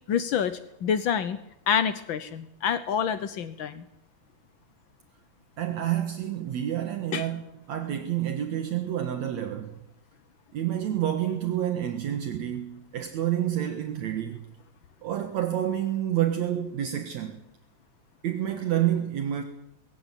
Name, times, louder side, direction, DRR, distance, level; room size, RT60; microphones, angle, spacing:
voice 1, 0.1-1.4 1.7-3.8 7.1-7.3, left 8 dB, 85° left, 1.1 m, -27 dB
voice 2, 5.6-7.4 7.7-9.7 10.5-14.5 15.0-17.4 18.2-19.4, right 11 dB, 65° right, 2.6 m, -28 dB
21.5 x 16.0 x 9.2 m
omnidirectional pair, 3.5 m